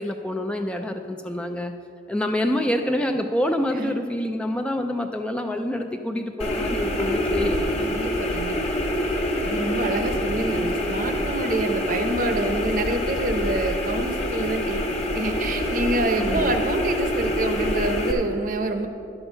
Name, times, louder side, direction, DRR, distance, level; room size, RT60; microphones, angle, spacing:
voice 1, 0.0-1.7 2.1-7.9 16.2-16.5, left 1 dB, 5° left, 5 dB, 0.4 m, -27 dB
sound 1, 6.4-18.1, left 1 dB, 35° left, 1.2 m, -26 dB
voice 2, 7.8-8.6 9.4-18.9, right 2 dB, 50° right, 6 dB, 0.8 m, -27 dB
10.5 x 7.2 x 5.4 m, 2.4 s
head